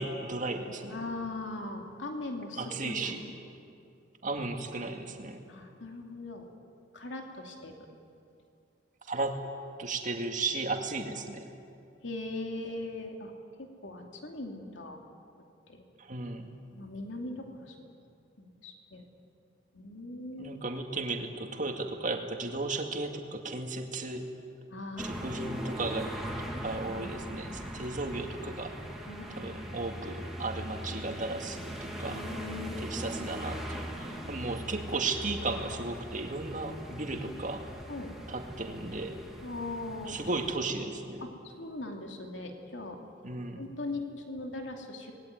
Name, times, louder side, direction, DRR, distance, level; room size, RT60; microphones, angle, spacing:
voice 1, 0.0-1.0 2.6-3.2 4.2-5.4 9.1-9.4 9.8-11.4 16.0-16.5 20.4-24.2 25.0-28.7 29.3-32.3 32.8-37.6 38.3-39.2 40.1-41.2 43.2-43.6, right 3 dB, 45° right, 4 dB, 2.3 m, -35 dB
voice 2, 0.9-3.3 5.5-6.4 6.9-7.7 12.0-13.3 13.6-15.0 15.7-15.8 16.7-17.7 18.4-19.1 19.7-20.6 24.7-25.3 27.5-27.9 29.1-29.7 32.1-32.8 33.1-33.2 37.1-37.4 37.9-38.1 39.4-40.2 41.2-43.0 43.6-45.1, left 2 dB, 75° left, 3 dB, 2.8 m, -40 dB
sound 1, 25.0-40.6, equal, ahead, 3.0 m, -40 dB
26.0 x 20.0 x 9.4 m, 2.5 s
head